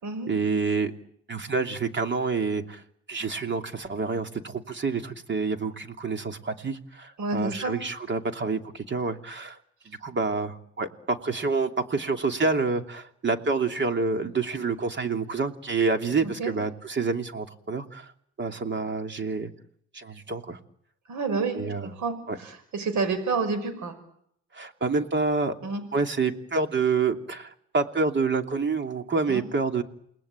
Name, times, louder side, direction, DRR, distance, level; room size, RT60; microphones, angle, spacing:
voice 1, 0.3-0.9 1.3-2.8 3.1-9.6 9.8-18.1 18.4-19.5 19.9-20.6 21.5-21.9 22.3-22.4 24.5-25.5 25.9-29.8, right 4 dB, 40° right, 6 dB, 3.0 m, -28 dB
voice 2, 7.2-7.7 16.2-16.5 21.1-21.6 21.8-24.0 25.6-25.8 29.3-29.4, right 4 dB, 70° right, 11 dB, 5.8 m, -29 dB
29.0 x 20.5 x 9.0 m, 0.71 s
cardioid pair, 90°, 30 cm